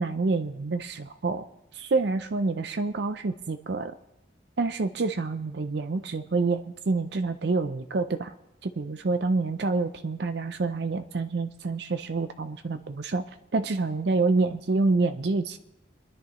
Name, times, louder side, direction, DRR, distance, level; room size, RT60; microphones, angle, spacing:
voice 1, 0.0-1.4 1.7-3.9 4.6-8.3 8.6-13.2 13.5-15.6, right 3 dB, 60° right, 9 dB, 0.5 m, -27 dB
27.0 x 11.0 x 3.1 m, 0.89 s
head